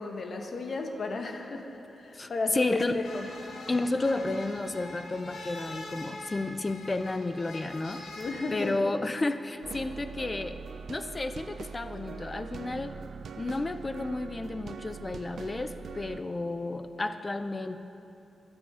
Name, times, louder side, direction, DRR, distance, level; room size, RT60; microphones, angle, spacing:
voice 1, 0.0-3.3 8.2-8.8, left 3 dB, 50° left, 3 dB, 1.3 m, -34 dB
voice 2, 2.1-3.0 3.7-8.0 8.5-10.6 10.9-12.9 13.4-17.8, left 2 dB, 25° left, 10 dB, 0.7 m, -32 dB
sound 1, 3.0-8.7, left 2 dB, 85° left, 2.0 m, -43 dB
sound 2, 9.6-16.2, right 5 dB, 65° right, 0.5 m, -42 dB
21.5 x 12.5 x 5.0 m, 2.9 s
wide cardioid pair, 140°, 0 cm